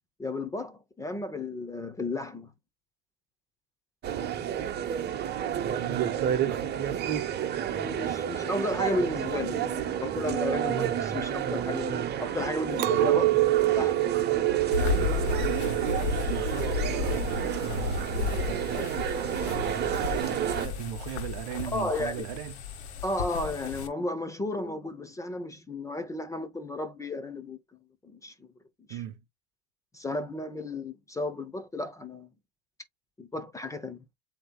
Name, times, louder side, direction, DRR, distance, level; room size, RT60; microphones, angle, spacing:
voice 1, 0.2-2.5 7.7-13.2 13.7-14.0 21.7-22.3 23.0-27.6 28.0-28.3 28.9-29.0 29.9-32.3 33.2-34.0, left 2 dB, 10° left, 0.6 m, -33 dB
sound 1, 4.0-20.7, right 9 dB, 30° right, 1.1 m, -30 dB
voice 2, 5.6-6.8 12.8-13.4 14.7-22.6 28.9-29.2, right 12 dB, 55° right, 0.8 m, -38 dB
Chink clink, 12.8-18.2, right 18 dB, 85° right, 0.8 m, -28 dB
sound 2, 14.7-23.9, left 6 dB, 85° left, 1.2 m, -33 dB
7.8 x 2.9 x 2.3 m
supercardioid pair, 125°, 32 cm